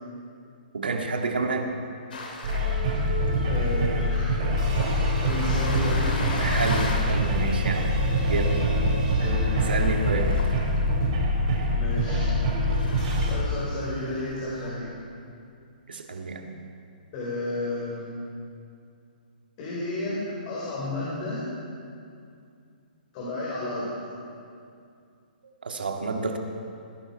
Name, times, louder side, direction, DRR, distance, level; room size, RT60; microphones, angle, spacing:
voice 1, 0.7-1.7 6.4-8.0 8.3-8.6 9.7-10.3 15.9-16.5 25.6-26.4, right 3 dB, 80° right, 3 dB, 1.9 m, -29 dB
sound 1, 2.1-14.7, left 2 dB, 65° left, 3.0 m, -39 dB
sound 2, 2.4-13.4, equal, 50° right, 4.7 m, -24 dB
voice 2, 3.5-4.4 5.1-6.2 9.2-9.7 11.7-12.4 13.3-14.9 17.1-18.1 19.6-21.4 23.1-23.9, left 2 dB, 40° left, -7 dB, 4.5 m, -32 dB
21.0 x 11.0 x 4.6 m, 2.4 s
hypercardioid pair, 130°, 5 cm